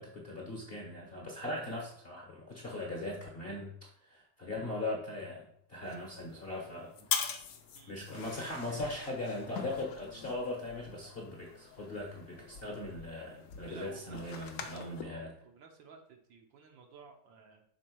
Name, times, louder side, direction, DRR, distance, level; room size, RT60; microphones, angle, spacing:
voice 1, 0.0-6.9 7.9-15.3, left 2 dB, 40° left, -1 dB, 0.9 m, -39 dB
sound 1, 5.8-15.0, left 7 dB, 75° left, 0.7 m, -43 dB
voice 2, 13.6-17.6, right 5 dB, 70° right, 3 dB, 1.5 m, -53 dB
6.0 x 4.4 x 4.5 m, 0.66 s
omnidirectional pair, 2.3 m